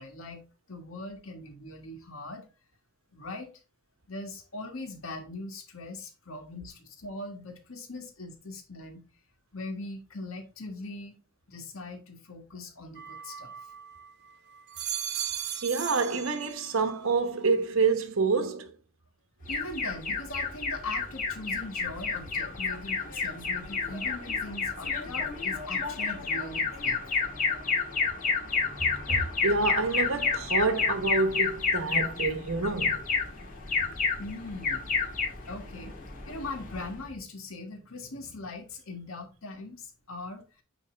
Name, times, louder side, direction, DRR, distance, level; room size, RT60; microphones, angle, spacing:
voice 1, 0.0-2.4 3.1-3.5 4.1-9.0 9.5-11.1 11.5-13.6 19.5-27.0 34.2-34.9 35.5-35.9 36.3-40.6, left 2 dB, 85° left, 1.6 m, -41 dB
sound 1, 13.0-14.1 14.5-17.0 17.3-17.9, right 9 dB, 55° right, 0.8 m, -37 dB
voice 2, 15.6-18.7 28.8-33.0, right 4 dB, 80° right, 1.0 m, -27 dB
Alarm, 19.5-37.1, left 4 dB, 40° left, 1.8 m, -30 dB
9.2 x 3.1 x 3.3 m
head